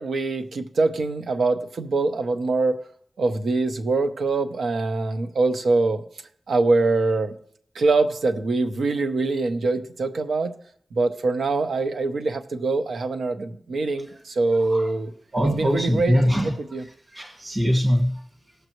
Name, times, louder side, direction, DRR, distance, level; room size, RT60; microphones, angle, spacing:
voice 1, 0.0-2.8 3.2-6.0 6.5-7.3 7.7-10.5 10.9-15.1 15.6-16.2 16.7-16.8, right 3 dB, 90° right, 7 dB, 0.9 m, -23 dB
voice 2, 15.3-16.5 17.1-18.2, equal, 25° right, 1 dB, 1.7 m, -22 dB
18.5 x 6.7 x 3.0 m, 0.65 s
cardioid pair, 65°, 0 cm